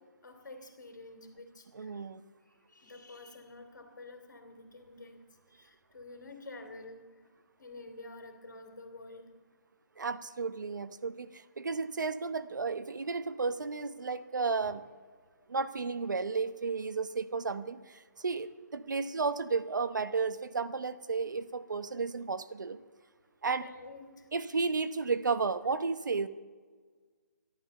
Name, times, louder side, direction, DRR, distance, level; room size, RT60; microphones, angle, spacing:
voice 1, 0.2-2.0 2.5-5.2 5.5-7.3 7.6-9.3 14.6-14.7 15.4-15.5 18.2-18.3 23.6-24.3, left 2 dB, 75° left, 6 dB, 3.0 m, -49 dB
voice 2, 1.7-2.2 10.0-14.8 15.5-22.8 23.4-23.7 24.3-26.3, right 4 dB, 80° right, 12 dB, 1.0 m, -33 dB
13.5 x 11.5 x 6.6 m, 1.5 s
hypercardioid pair, 180°, 10 cm